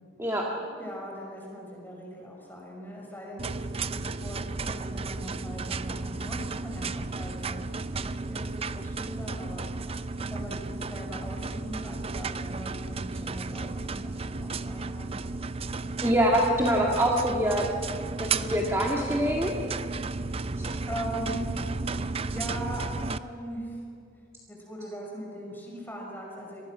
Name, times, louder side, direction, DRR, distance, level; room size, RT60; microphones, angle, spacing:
voice 1, 0.5-7.6 8.0-9.7 10.0-15.1 20.6-21.6 22.3-23.8 24.5-26.6, equal, 10° left, -1 dB, 5.8 m, -40 dB
sound 1, 3.4-23.2, right 3 dB, 30° right, 0.5 m, -33 dB
voice 2, 16.0-17.7 18.2-19.5 20.6-20.7, equal, 15° right, -2 dB, 1.8 m, -24 dB
25.5 x 19.5 x 6.1 m, 2.4 s
head